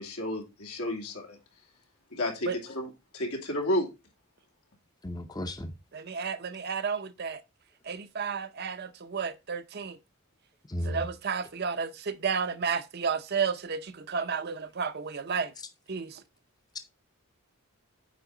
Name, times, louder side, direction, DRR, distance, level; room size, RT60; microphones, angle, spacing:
voice 1, 0.0-1.4 2.1-3.9, left 1 dB, 85° left, 2.5 m, -32 dB
voice 2, 5.0-5.7 10.7-11.1, equal, 20° left, 0.6 m, -34 dB
voice 3, 5.9-7.4 7.8-10.0 10.8-15.5 15.9-16.2, right 6 dB, 45° right, 0.6 m, -32 dB
9.1 x 4.6 x 3.8 m
head